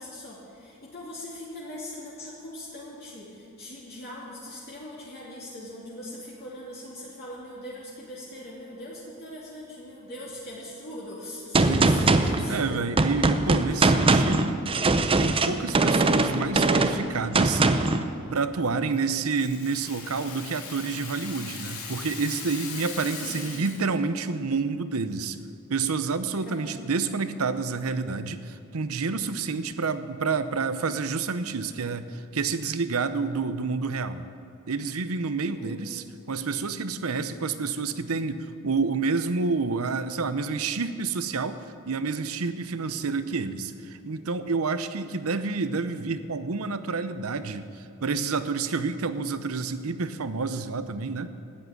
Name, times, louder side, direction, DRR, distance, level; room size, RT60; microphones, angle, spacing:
voice 1, 0.0-12.7 13.5-14.1 23.0-23.4 26.4-26.6 35.5-35.8, left 1 dB, 50° left, -7 dB, 2.6 m, -41 dB
Gunshot gunfire, 11.5-18.0, right 3 dB, 25° right, 0.6 m, -22 dB
voice 2, 11.6-12.0 12.5-14.6 15.2-17.6 18.3-25.4 25.7-34.2 34.7-41.6 41.8-51.3, right 4 dB, 85° right, 12 dB, 0.8 m, -29 dB
Rattle (instrument), 18.9-24.0, left 5 dB, 85° left, 2.3 m, -39 dB
13.5 x 8.7 x 9.3 m, 2.4 s
head